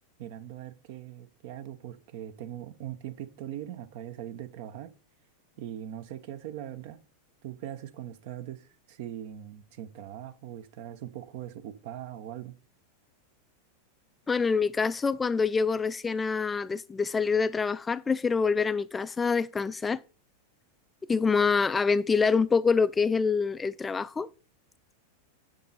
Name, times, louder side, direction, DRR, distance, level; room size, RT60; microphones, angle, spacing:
voice 1, 0.2-4.9 5.6-7.0 7.4-12.5, right 11 dB, 55° right, 0.9 m, -41 dB
voice 2, 14.3-20.0 21.1-24.3, left 5 dB, 15° left, 0.3 m, -26 dB
7.6 x 6.7 x 4.0 m
figure-of-eight pair, 90°, 0 cm